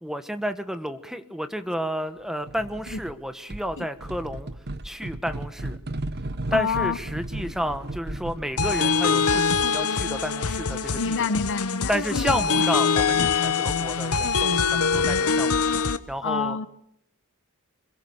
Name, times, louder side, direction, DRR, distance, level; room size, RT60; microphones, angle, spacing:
voice 1, 0.0-4.5 4.8-5.8 6.5-11.3 11.9-15.6 16.1-16.6, equal, ahead, 1.3 m, -31 dB
sound 1, 2.5-3.2 3.5-9.5, right 1 dB, 50° right, 1.2 m, -35 dB
voice 2, 6.5-7.0 11.0-12.7 16.2-16.7, left 5 dB, 60° left, 0.9 m, -28 dB
sound 2, 8.6-16.0, left 5 dB, 75° left, 1.2 m, -23 dB
26.5 x 22.0 x 6.6 m
head